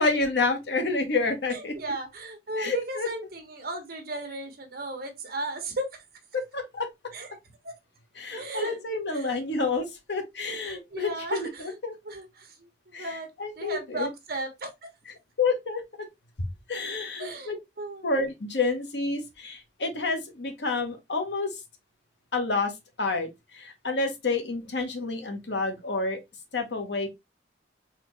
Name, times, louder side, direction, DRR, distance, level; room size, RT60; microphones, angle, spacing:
voice 1, 0.0-1.7 2.6-3.1 6.3-6.9 8.1-11.9 12.9-14.1 15.4-15.8 16.7-17.5 18.0-21.6 22.3-22.7 23.0-26.2 26.5-27.1, left 3 dB, 75° left, 1.1 m, -29 dB
voice 2, 1.5-6.0 7.1-7.4 7.6-7.7 8.3-8.8 9.1-9.3 10.5-11.8 12.0-13.3 13.6-14.7 17.2-18.1, right 2 dB, 60° right, 1.2 m, -35 dB
4.1 x 3.0 x 3.0 m
head